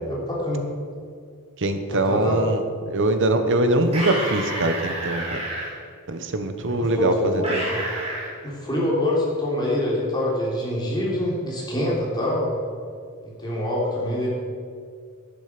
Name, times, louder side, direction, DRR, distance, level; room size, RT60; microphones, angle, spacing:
voice 1, 0.0-0.6 1.9-2.4 6.6-7.8 8.4-12.5 13.4-14.3, left 1 dB, 20° left, -5 dB, 3.2 m, -25 dB
voice 2, 1.6-5.4 6.1-7.7, right 2 dB, 60° right, 8 dB, 1.1 m, -23 dB
sound 1, 3.9-5.7 7.4-8.3, right 1 dB, 30° right, 3.7 m, -29 dB
11.0 x 10.0 x 6.0 m, 2.2 s
head